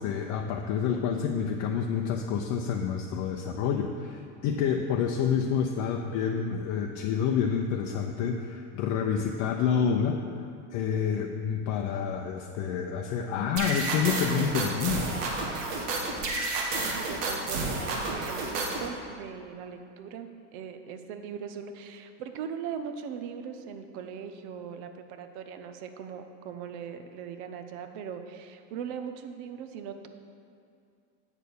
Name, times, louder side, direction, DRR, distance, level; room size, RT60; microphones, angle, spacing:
voice 1, 0.0-10.2 10.7-15.0, left 7 dB, 55° left, 2 dB, 0.6 m, -28 dB
sound 1, 13.6-18.9, right 3 dB, 85° right, 1.5 m, -31 dB
voice 2, 16.8-30.1, right 7 dB, 65° right, 7 dB, 0.8 m, -40 dB
8.0 x 4.5 x 6.8 m, 2.4 s
supercardioid pair, 120°, 36 cm